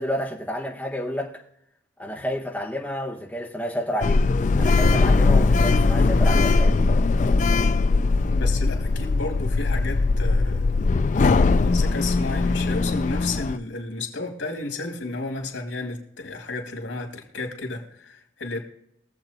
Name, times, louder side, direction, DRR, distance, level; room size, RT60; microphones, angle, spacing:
voice 1, 0.0-1.4 2.0-4.2 4.6-6.9, equal, 10° left, 1.5 m, -30 dB
Sliding door, 4.0-13.6, left 3 dB, 40° left, 0.3 m, -20 dB
voice 2, 8.3-10.6 11.3-18.6, left 3 dB, 90° left, 2.7 m, -32 dB
23.5 x 7.9 x 2.9 m
head